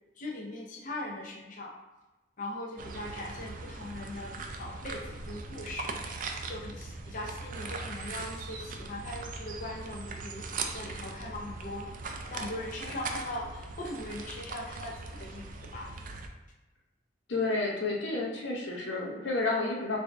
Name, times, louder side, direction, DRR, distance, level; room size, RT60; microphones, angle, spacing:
voice 1, 0.2-1.7 2.4-10.5 10.7-11.9 12.3-15.4 15.7-15.9, left 1 dB, 45° left, -3 dB, 0.6 m, -40 dB
sound 1, 2.8-16.3, right 3 dB, 45° right, 0.4 m, -40 dB
voice 2, 17.3-20.0, left 3 dB, 90° left, -2 dB, 0.8 m, -30 dB
3.4 x 2.6 x 3.4 m, 1.1 s
head